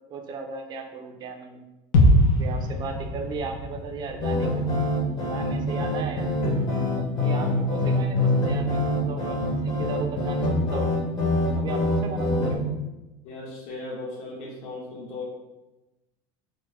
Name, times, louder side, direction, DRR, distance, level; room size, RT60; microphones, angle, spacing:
voice 1, 0.1-1.6 2.4-4.6 5.2-6.4 7.2-10.9 11.5-12.7, right 4 dB, 30° right, 5 dB, 0.4 m, -36 dB
sound 1, 1.9-5.9 6.2-6.3, left 1 dB, 70° left, 0.7 m, -23 dB
sound 2, 4.2-12.6, left 1 dB, 35° left, 0.9 m, -25 dB
voice 2, 13.2-15.2, left 2 dB, 55° left, -2 dB, 1.2 m, -37 dB
3.9 x 2.1 x 3.4 m, 1.0 s
cardioid pair, 150°, 14 cm